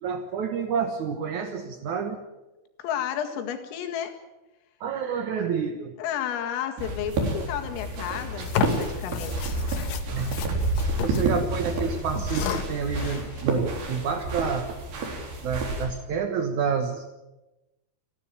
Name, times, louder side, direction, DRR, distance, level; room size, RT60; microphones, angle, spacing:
voice 1, 0.0-2.2 4.8-6.0 10.1-10.3 11.0-14.8 15.4-17.0, right 6 dB, 85° right, 6 dB, 1.7 m, -29 dB
voice 2, 2.8-4.2 6.0-9.9, left 9 dB, 90° left, 5 dB, 4.6 m, -32 dB
sound 1, 6.8-15.9, right 2 dB, 55° right, 5.8 m, -29 dB
sound 2, 8.4-11.2 11.6-11.7 12.2-13.4, left 8 dB, 75° left, 3.6 m, -32 dB
29.5 x 12.0 x 9.1 m, 1.0 s
omnidirectional pair, 5.7 m